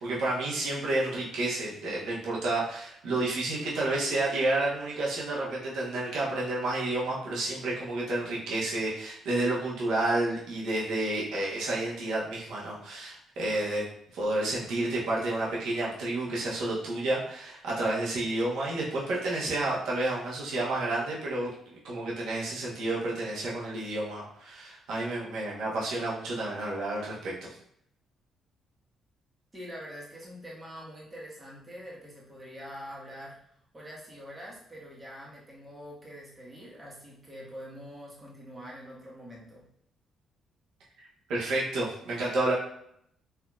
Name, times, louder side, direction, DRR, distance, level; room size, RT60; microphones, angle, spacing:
voice 1, 0.0-13.9 14.1-27.6 41.0-42.5, right 2 dB, 85° right, -5 dB, 1.1 m, -30 dB
voice 2, 29.5-33.4 33.7-39.7, equal, 20° right, -5 dB, 1.3 m, -45 dB
4.4 x 2.7 x 2.4 m, 0.71 s
cardioid pair, 90°, 0 cm